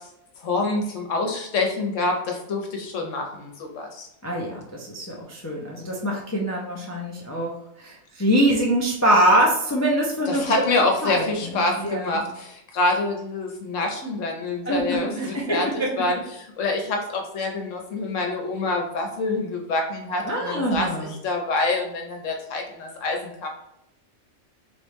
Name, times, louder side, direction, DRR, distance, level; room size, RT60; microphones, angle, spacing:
voice 1, 0.4-4.1 10.3-15.7 16.0-20.9 21.2-23.5, left 2 dB, 65° left, 2 dB, 1.1 m, -26 dB
voice 2, 4.2-7.5 7.8-10.4 11.0-12.2 14.7-15.6 20.2-21.1, right 1 dB, 20° left, -3 dB, 0.4 m, -24 dB
3.9 x 3.4 x 3.1 m, 0.80 s
omnidirectional pair, 1.4 m